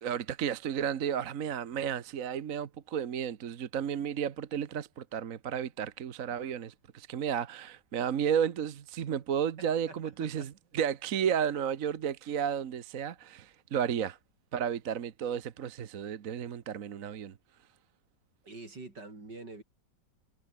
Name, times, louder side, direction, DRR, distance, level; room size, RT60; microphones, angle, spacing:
voice 1, 0.0-14.2 14.5-17.3, right 8 dB, 50° right, 1.3 m, -33 dB
voice 2, 9.9-10.5 18.4-19.6, right 3 dB, 70° right, 6.1 m, -46 dB
omnidirectional pair, 2.0 m